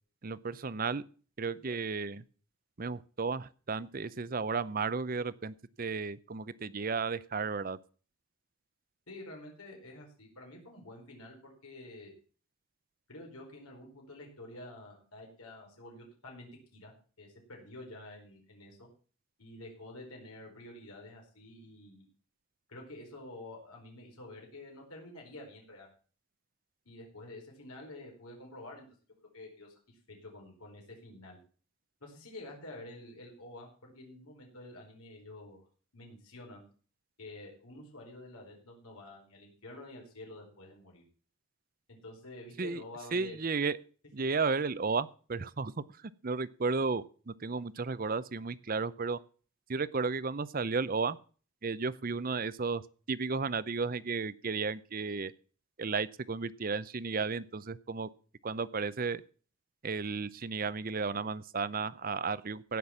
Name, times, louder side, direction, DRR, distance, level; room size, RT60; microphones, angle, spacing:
voice 1, 0.2-1.0 1.4-2.2 2.8-7.8 42.6-42.8 43.1-43.8 44.1-45.7 46.0-49.2 49.7-51.2 51.6-52.8 53.1-55.3 55.8-58.1 58.4-59.2 59.8-62.8, right 4 dB, 40° right, 17 dB, 0.6 m, -33 dB
voice 2, 9.1-12.1 13.1-18.9 19.4-22.1 22.7-25.9 26.8-28.9 29.3-31.4 32.0-35.7 35.9-36.6 37.2-41.0 41.9-43.4 44.2-44.3, left 2 dB, 90° left, 0 dB, 4.7 m, -49 dB
16.5 x 6.0 x 7.2 m, 0.40 s
head